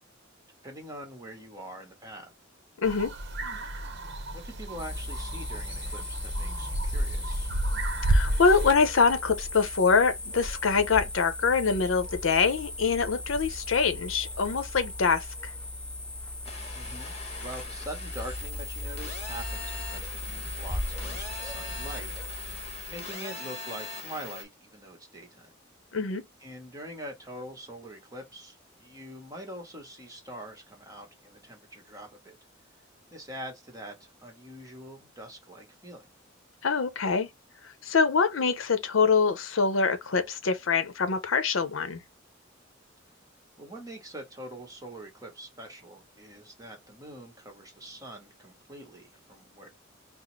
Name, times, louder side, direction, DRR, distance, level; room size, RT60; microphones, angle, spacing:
voice 1, 0.6-2.3 4.3-7.5 16.7-22.1 22.9-25.6 26.4-32.4 33.1-36.1 43.6-49.7, right 1 dB, 20° right, 1.1 m, -44 dB
voice 2, 2.8-3.1 8.1-15.2 25.9-26.2 36.6-37.3 37.8-42.0, left 5 dB, 85° left, 0.7 m, -24 dB
sound 1, 2.8-8.7, right 1 dB, 60° right, 0.7 m, -30 dB
sound 2, 4.8-23.1, left 1 dB, 5° left, 0.3 m, -37 dB
sound 3, 16.4-24.4, left 3 dB, 35° left, 1.0 m, -41 dB
4.0 x 2.0 x 3.1 m
head